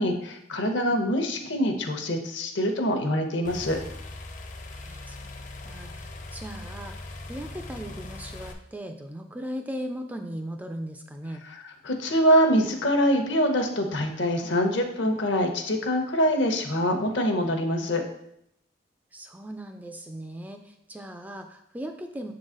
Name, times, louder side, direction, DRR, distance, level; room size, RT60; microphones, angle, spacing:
voice 1, 0.0-3.8 11.5-18.0, equal, 70° left, 4 dB, 0.9 m, -24 dB
sound 1, 3.4-8.5, left 2 dB, 40° left, 0.6 m, -40 dB
voice 2, 4.8-11.4 19.1-22.3, equal, 10° right, 5 dB, 0.3 m, -38 dB
6.7 x 3.9 x 3.8 m, 0.74 s
head